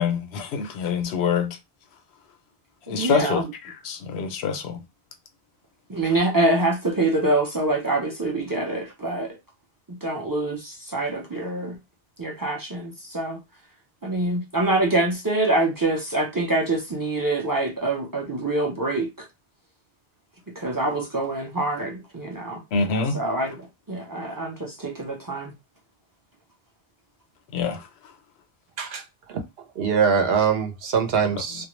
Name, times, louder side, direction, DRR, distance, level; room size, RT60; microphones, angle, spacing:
voice 1, 0.0-1.6 2.9-4.8 22.7-23.2 27.5-27.9, left 5 dB, 85° left, 0.9 m, -26 dB
voice 2, 2.9-3.5 5.9-9.4 9.9-11.8 12.2-13.4 14.0-19.3 20.6-22.6 23.1-25.5, right 2 dB, 30° right, 0.4 m, -25 dB
voice 3, 29.8-31.7, right 6 dB, 70° right, 0.8 m, -22 dB
2.3 x 2.1 x 3.0 m
omnidirectional pair, 1.1 m